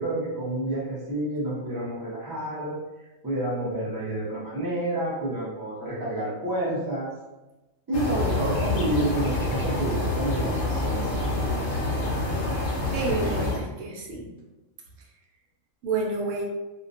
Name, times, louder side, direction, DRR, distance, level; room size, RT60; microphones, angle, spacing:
voice 1, 0.0-2.8 3.2-7.1 7.9-11.6, right 1 dB, 25° right, -7 dB, 0.6 m, -29 dB
sound 1, 7.9-13.6, left 2 dB, 65° left, 0.9 m, -27 dB
voice 2, 12.9-14.3 15.8-16.4, right 3 dB, 80° right, -2 dB, 0.9 m, -29 dB
2.4 x 2.1 x 2.4 m, 1.1 s
omnidirectional pair, 1.3 m